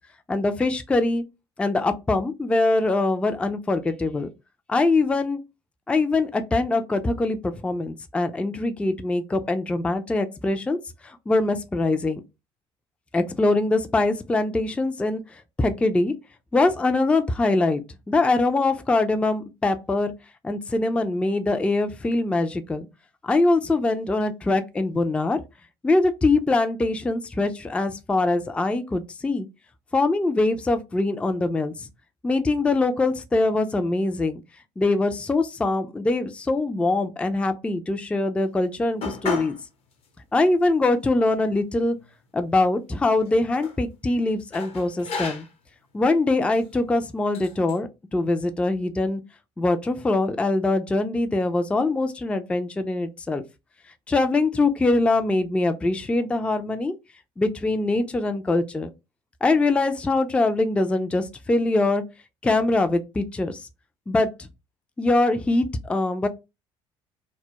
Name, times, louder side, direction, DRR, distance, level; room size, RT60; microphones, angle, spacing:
voice 1, 0.3-1.2 1.6-4.3 4.7-5.4 5.9-10.8 11.0-12.2 13.1-16.1 16.5-17.8 18.1-20.1 20.4-22.9 23.2-25.4 25.8-29.5 29.9-31.9 32.2-34.4 34.8-39.5 40.3-42.0 42.3-45.5 45.9-49.2 49.6-53.4 54.1-56.9 57.4-58.9 59.4-62.0 62.4-63.7 64.1-64.5 65.0-66.3, left 2 dB, 10° left, 0.3 m, -23 dB
sound 1, 39.0-39.6 40.0-40.1 40.9-41.0 41.3-42.3 43.1-43.8 44.5-45.7 46.4-46.7 47.3-47.8, left 4 dB, 50° left, 0.7 m, -34 dB
2.2 x 2.0 x 2.8 m
hypercardioid pair, 70°, 13 cm